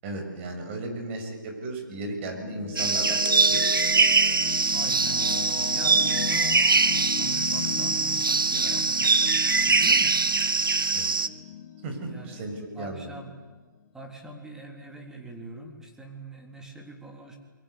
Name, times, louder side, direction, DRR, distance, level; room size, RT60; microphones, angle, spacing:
voice 1, 0.0-3.2 3.5-3.7 10.9-11.1 11.8-13.1, right 2 dB, 35° right, 4 dB, 6.5 m, -35 dB
sound 1, 1.9-13.1, left 8 dB, 45° left, 2.4 m, -36 dB
sound 2, 2.8-11.3, right 4 dB, 85° right, 1.3 m, -23 dB
voice 2, 4.7-6.5 6.9-10.2 12.0-12.4 12.8-13.3 13.9-17.4, right 1 dB, 5° right, 2 dB, 3.6 m, -43 dB
29.0 x 23.0 x 8.2 m, 1.3 s
hypercardioid pair, 140°, 11 cm